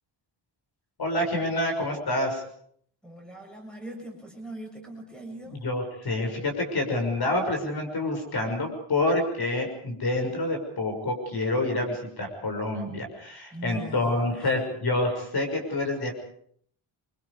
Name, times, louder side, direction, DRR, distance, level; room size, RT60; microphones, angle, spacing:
voice 1, 1.0-2.4 5.6-16.1, left 2 dB, 50° left, 3 dB, 6.4 m, -27 dB
voice 2, 3.0-5.6 13.5-14.6, right 1 dB, ahead, 1 dB, 6.9 m, -41 dB
29.5 x 25.0 x 5.0 m, 0.63 s
wide cardioid pair, 170°, 50 cm